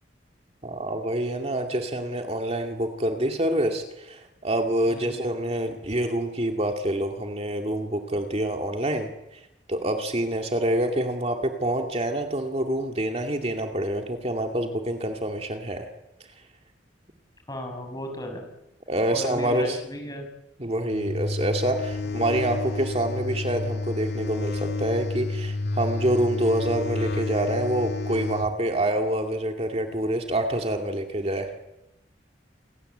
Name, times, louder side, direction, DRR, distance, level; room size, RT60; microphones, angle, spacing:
voice 1, 0.6-9.1 9.7-15.9 18.9-19.8 20.6-31.5, right 1 dB, 35° right, 4 dB, 2.2 m, -26 dB
voice 2, 4.9-5.2 17.5-18.4 19.1-20.3 22.0-22.4, left 1 dB, 20° left, 4 dB, 6.3 m, -36 dB
sound 1, 20.9-28.5, left 3 dB, 65° left, 1.9 m, -30 dB
29.0 x 21.0 x 8.0 m, 0.91 s
head